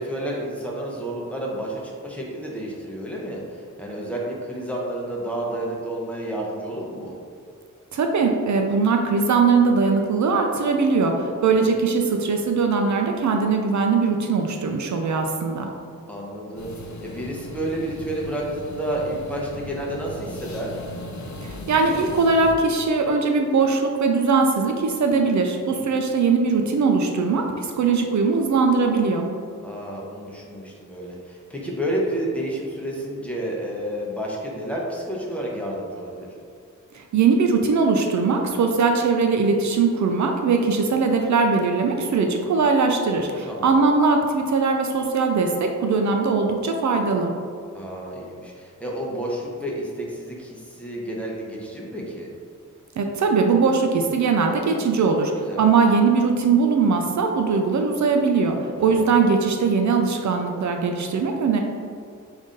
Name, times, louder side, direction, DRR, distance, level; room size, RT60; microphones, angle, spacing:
voice 1, 0.0-7.1 11.3-11.7 16.1-16.7 17.0-20.8 25.7-26.0 29.6-36.3 43.5-43.9 47.7-52.3 55.2-55.6 58.8-59.1, right 1 dB, 5° left, -4 dB, 0.7 m, -30 dB
voice 2, 7.9-15.7 21.4-29.3 36.9-47.3 53.0-55.3 55.6-61.6, right 4 dB, 65° right, 3 dB, 0.4 m, -20 dB
sound 1, 16.6-22.5, left 1 dB, 60° left, 0.6 m, -37 dB
5.4 x 2.7 x 3.7 m, 2.3 s
wide cardioid pair, 150°, 32 cm